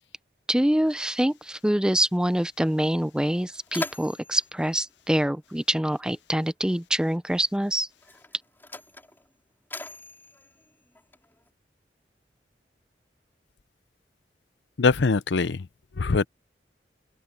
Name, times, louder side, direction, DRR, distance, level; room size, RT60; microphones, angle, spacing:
voice 1, 0.5-7.9, right 1 dB, 5° right, 0.5 m, -25 dB
Mechanisms, 2.7-2.8 3.2-5.9 6.9-7.1 7.9-11.5, left 2 dB, 10° left, 5.8 m, -41 dB
voice 2, 14.8-15.7 16.0-16.3, left 4 dB, 80° left, 0.6 m, -22 dB
open air
head